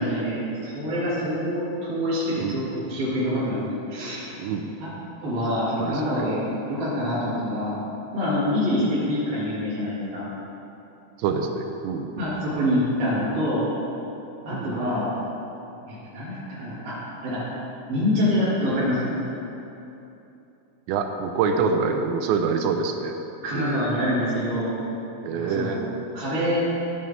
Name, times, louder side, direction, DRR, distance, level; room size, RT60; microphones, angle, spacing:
voice 1, 0.0-4.3 4.8-4.9 5.2-6.4 6.7-7.7 8.1-10.3 12.2-13.7 14.4-15.1 15.9-16.9 17.2-17.4 17.9-19.2 23.4-24.7 25.3-25.8 26.1-26.6, left 1 dB, 45° right, -11 dB, 2.1 m, -26 dB
voice 2, 4.4-4.7 5.8-6.4 7.2-7.4 11.2-12.1 14.5-14.7 20.9-23.1 23.5-23.8 25.2-25.9, right 5 dB, 85° right, 5 dB, 2.8 m, -26 dB
13.0 x 7.6 x 3.5 m, 2.9 s
omnidirectional pair, 5.1 m